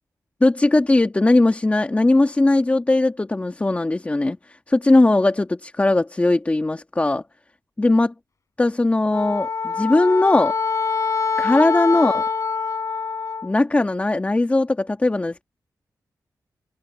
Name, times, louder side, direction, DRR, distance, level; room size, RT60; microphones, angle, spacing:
voice 1, 0.4-7.2 7.8-8.1 8.6-10.6 11.4-12.2 13.4-15.4, left 2 dB, 20° left, 2.0 m, -19 dB
Wind instrument woodwind instrument, 9.1-13.5, left 5 dB, 50° left, 7.1 m, -24 dB
wide cardioid pair, 95°, 7 cm